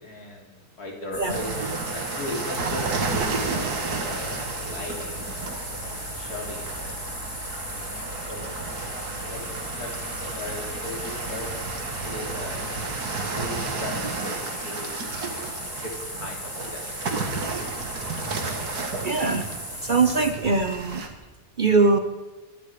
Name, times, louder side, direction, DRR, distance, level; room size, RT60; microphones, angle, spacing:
voice 1, 0.0-5.2 5.8-7.0 8.3-12.7 13.3-16.9, left 1 dB, 85° left, 0 dB, 3.7 m, -38 dB
sound 1, 1.1-20.3, left 1 dB, 50° left, 5.3 m, -37 dB
sound 2, 1.3-21.1, right 4 dB, 90° right, 2.2 m, -32 dB
voice 2, 19.0-19.5 19.8-21.0 21.6-22.0, right 4 dB, 40° right, 8 dB, 0.9 m, -21 dB
23.5 x 9.9 x 5.0 m, 1.2 s
omnidirectional pair, 1.6 m